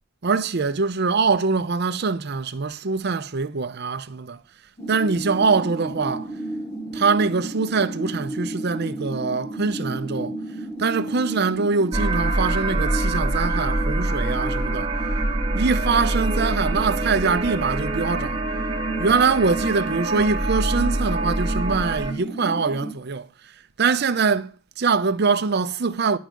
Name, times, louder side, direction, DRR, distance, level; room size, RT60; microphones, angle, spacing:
voice 1, 0.2-4.4 4.9-6.3 6.9-10.4 10.8-14.9 15.5-18.4 19.0-26.2, right 4 dB, 55° right, 0.7 m, -23 dB
sound 1, 4.8-22.9, right 2 dB, 20° left, 1.0 m, -33 dB
sound 2, 11.9-22.1, right 2 dB, 25° right, 1.7 m, -25 dB
10.5 x 5.4 x 7.4 m
head